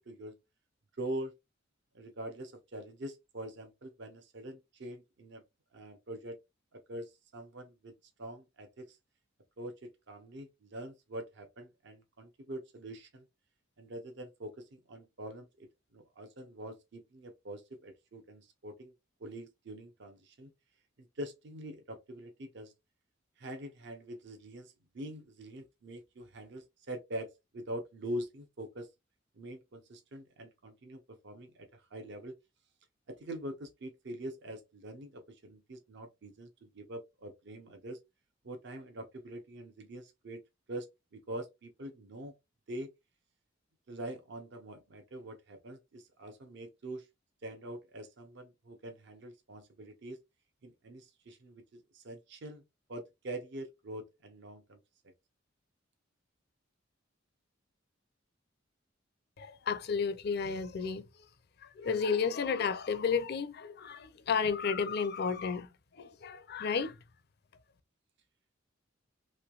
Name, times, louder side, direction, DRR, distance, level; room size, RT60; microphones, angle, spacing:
voice 1, 0.1-0.4 1.0-1.3 1.9-5.4 5.7-6.4 6.7-7.9 8.2-9.0 9.6-13.3 13.8-18.9 19.2-20.5 21.0-22.7 23.4-28.9 29.4-32.4 33.1-38.0 38.4-40.4 40.7-40.9 41.1-42.3 42.7-42.9 43.9-47.1 47.4-50.2 50.6-52.6 52.9-54.8, right 1 dB, 65° right, 0.7 m, -44 dB
voice 2, 59.4-61.2 61.6-67.0, left 5 dB, 55° left, 0.5 m, -32 dB
3.1 x 3.0 x 2.4 m
head